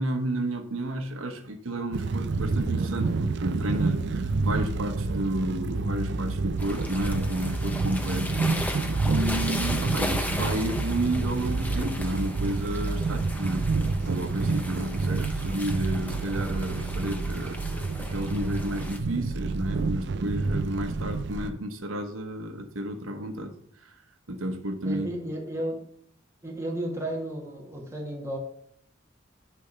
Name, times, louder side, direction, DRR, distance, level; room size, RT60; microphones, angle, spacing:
voice 1, 0.0-8.3 8.6-23.5 24.3-25.1, right 1 dB, 80° right, 5 dB, 1.0 m, -32 dB
sound 1, 1.9-21.5, right 3 dB, 55° right, 0.4 m, -28 dB
sound 2, 6.6-19.0, left 1 dB, 10° left, 0.7 m, -37 dB
voice 2, 24.8-25.8 26.4-28.4, right 1 dB, 15° right, -2 dB, 1.9 m, -33 dB
10.0 x 3.5 x 6.8 m, 0.63 s
head